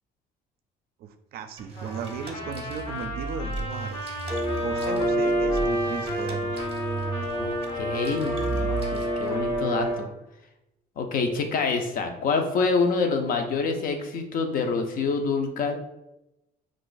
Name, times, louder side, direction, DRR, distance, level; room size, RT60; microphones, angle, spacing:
voice 1, 1.0-4.1 4.6-6.6, right 7 dB, 65° right, 9 dB, 0.4 m, -36 dB
sound 1, 1.6-9.6, right 3 dB, 35° right, 0.7 m, -36 dB
Trumpet, 1.8-10.1, left 1 dB, 75° left, 1.1 m, -36 dB
sound 2, 4.3-10.0, equal, 5° left, 0.5 m, -28 dB
voice 2, 7.4-10.1 11.0-15.8, left 4 dB, 55° left, 5 dB, 0.6 m, -27 dB
2.5 x 2.4 x 3.9 m, 0.91 s
cardioid pair, 110°, 17 cm